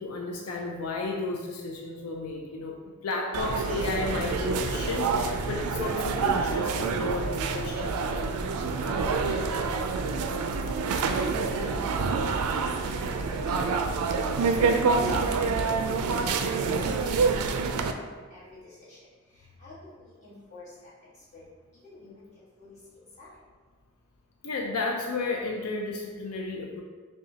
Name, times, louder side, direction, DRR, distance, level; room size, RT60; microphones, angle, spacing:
voice 1, 0.0-2.8 3.0-8.1 15.0-15.4 24.4-26.8, left 3 dB, 85° left, 0 dB, 0.4 m, -33 dB
sound 1, 3.3-17.9, right 4 dB, 85° right, 0.3 m, -27 dB
voice 2, 8.8-10.6 11.0-14.3 14.9-15.2 16.0-17.6 17.9-18.0 18.3-19.0 19.6-20.7 21.3-21.5 21.8-22.3 22.6-23.4, left 2 dB, 30° left, -10 dB, 1.4 m, -46 dB
5.5 x 2.2 x 2.7 m, 1.4 s
head